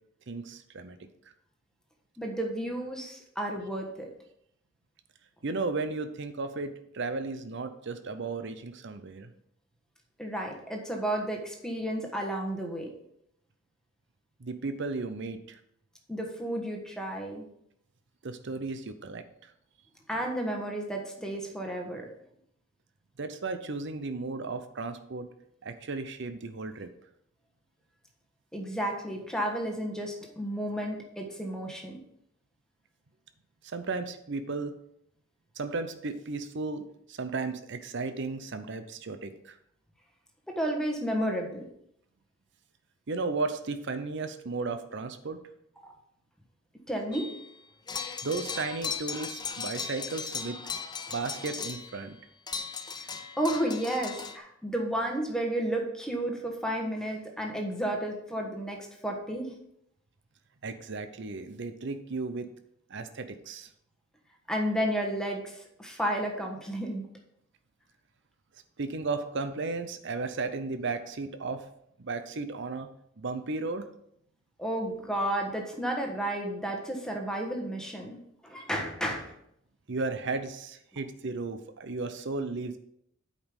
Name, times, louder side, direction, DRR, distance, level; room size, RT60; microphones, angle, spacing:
voice 1, 0.3-1.0 5.4-9.3 14.4-15.6 18.2-19.5 23.2-25.3 25.6-26.9 33.6-34.7 35.6-39.6 43.1-45.4 48.2-50.6 51.1-52.2 60.6-62.5 62.9-63.7 68.8-71.6 72.0-72.9 73.2-73.8 79.9-82.8, right 3 dB, 65° right, 9 dB, 0.7 m, -34 dB
voice 2, 2.2-4.1 10.2-12.9 16.1-17.4 20.1-22.1 28.5-32.0 40.5-41.7 45.8-45.9 46.9-47.3 53.4-59.5 64.5-67.0 74.6-79.3, right 1 dB, 5° left, 1 dB, 1.4 m, -32 dB
sound 1, 47.1-47.5 47.9-52.1 52.5-54.4, left 5 dB, 20° left, 0.6 m, -37 dB
8.4 x 5.2 x 5.3 m, 0.74 s
head